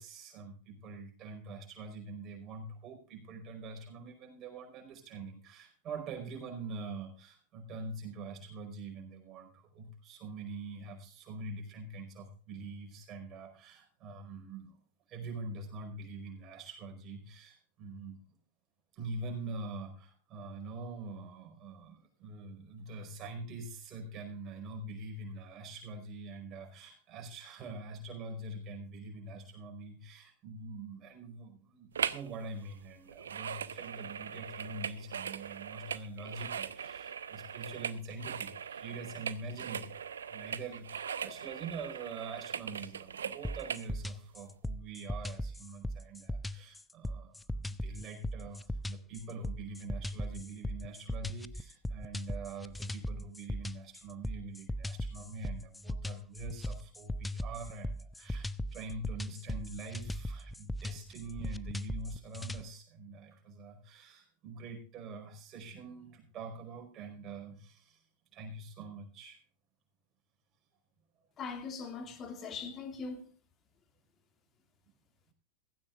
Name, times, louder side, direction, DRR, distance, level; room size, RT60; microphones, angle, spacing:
voice 1, 0.0-14.8 15.1-18.2 18.9-68.0 68.3-69.4, right 3 dB, 30° right, 5.0 m, -44 dB
sound 1, 31.9-32.3 32.6-43.9 44.4-44.5, right 7 dB, 65° right, 0.7 m, -40 dB
sound 2, 43.4-62.6, left 1 dB, 5° left, 0.5 m, -38 dB
voice 2, 71.4-73.3, left 5 dB, 30° left, 2.4 m, -41 dB
16.0 x 16.0 x 2.5 m
figure-of-eight pair, 90°, 0 cm